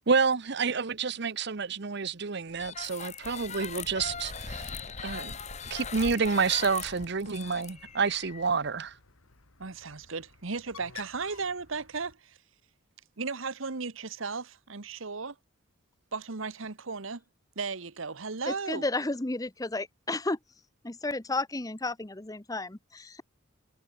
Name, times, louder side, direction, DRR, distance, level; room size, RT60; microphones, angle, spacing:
voice 1, 0.1-4.7 5.0-5.3 5.7-8.9, right 5 dB, 55° right, 0.8 m, -29 dB
sound 1, 2.6-8.5, left 5 dB, 35° left, 2.4 m, -40 dB
Bird, 6.0-12.1, left 6 dB, 85° left, 2.5 m, -53 dB
voice 2, 9.6-12.4 13.2-15.4 16.1-17.2 17.6-18.8, right 4 dB, 70° right, 1.2 m, -35 dB
voice 3, 18.5-20.4 20.8-23.2, left 2 dB, 15° left, 0.7 m, -32 dB
head